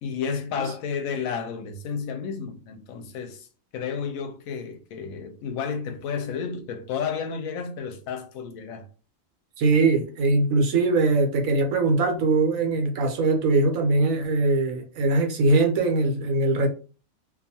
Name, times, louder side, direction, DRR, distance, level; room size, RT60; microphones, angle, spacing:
voice 1, 0.0-3.5 3.7-8.9, left 6 dB, 85° left, 1.0 m, -31 dB
voice 2, 9.6-16.7, right 3 dB, 80° right, 1.1 m, -21 dB
2.6 x 2.3 x 2.7 m
omnidirectional pair, 1.4 m